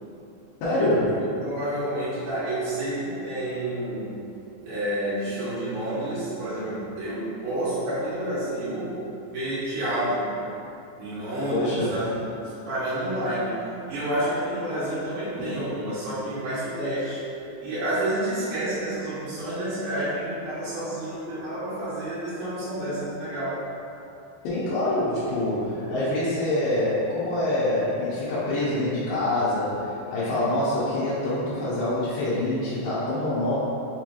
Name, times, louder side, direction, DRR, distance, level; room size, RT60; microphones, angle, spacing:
voice 1, 0.6-1.2 11.5-12.0 24.4-33.7, left 1 dB, 75° left, -10 dB, 2.3 m, -25 dB
voice 2, 1.4-4.3 4.6-10.3 11.0-13.6 13.9-17.2 17.6-23.6, right 1 dB, 80° right, -12 dB, 3.4 m, -29 dB
6.6 x 3.0 x 2.5 m, 2.7 s
omnidirectional pair, 4.3 m